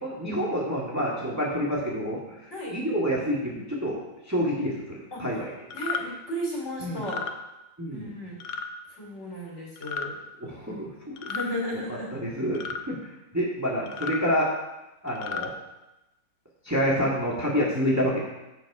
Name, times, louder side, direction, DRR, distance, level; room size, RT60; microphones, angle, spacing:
voice 1, 0.0-4.0 4.3-5.5 6.8-7.1 7.8-8.1 10.4-10.9 12.1-13.0 13.3-14.5 15.0-15.5 16.6-18.2, equal, 10° right, -4 dB, 1.9 m, -28 dB
sound 1, 5.7-6.0 7.0-7.3 8.4-8.7 9.8-10.1 11.2-11.5 12.5-12.8 13.9-14.2 15.1-15.5, left 6 dB, 75° left, 1.3 m, -33 dB
voice 2, 5.7-7.3 7.9-8.4 8.9-10.2 11.3-12.1, equal, 50° left, -2 dB, 3.3 m, -34 dB
15.5 x 5.2 x 4.9 m, 0.97 s
omnidirectional pair, 1.6 m